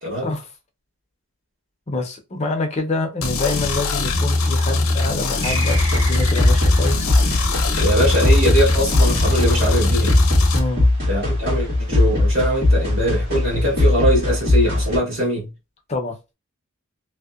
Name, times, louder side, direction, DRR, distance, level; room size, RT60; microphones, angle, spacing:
voice 1, 0.0-0.3 7.8-10.2 11.1-15.5, equal, 60° right, 1.3 m, -22 dB
voice 2, 1.9-7.1 10.5-10.9 15.9-16.2, left 2 dB, 30° left, 0.5 m, -26 dB
sound 1, 3.2-10.6, left 2 dB, 85° left, 0.6 m, -21 dB
sound 2, 5.4-8.4, right 1 dB, 20° right, 0.6 m, -32 dB
sound 3, 5.7-15.0, left 2 dB, 45° right, 1.5 m, -19 dB
2.7 x 2.1 x 2.3 m
head